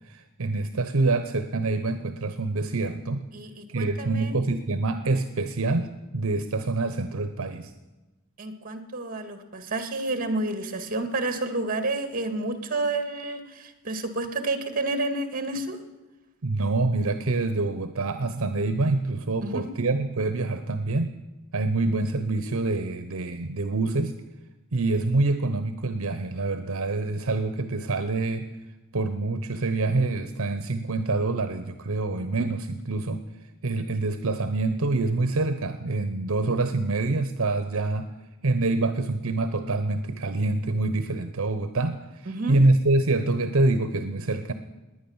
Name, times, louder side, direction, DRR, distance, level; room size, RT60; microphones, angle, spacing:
voice 1, 0.0-3.2 3.7-7.7 16.4-21.1 21.5-24.1 24.7-28.4 28.9-33.2 33.6-38.1 38.4-44.5, right 2 dB, 65° right, 10 dB, 0.8 m, -26 dB
voice 2, 3.3-4.3 8.4-15.8 19.4-19.7 42.2-42.6, right 2 dB, 40° right, 9 dB, 1.8 m, -30 dB
19.5 x 9.6 x 7.2 m, 1.1 s
head